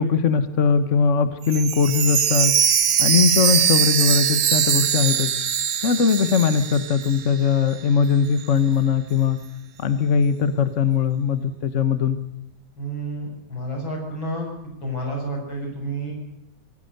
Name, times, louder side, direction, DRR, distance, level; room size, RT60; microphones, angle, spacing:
voice 1, 0.0-2.5 3.0-5.3 5.8-9.4 9.8-12.2, left 6 dB, 45° left, 11 dB, 1.4 m, -20 dB
Chime, 1.5-7.4 7.7-7.8 8.4-8.5, right 8 dB, 60° right, 1.6 m, -21 dB
voice 2, 12.8-16.1, right 1 dB, 85° left, 1 dB, 7.8 m, -30 dB
25.5 x 17.0 x 6.7 m, 0.87 s
omnidirectional pair, 2.1 m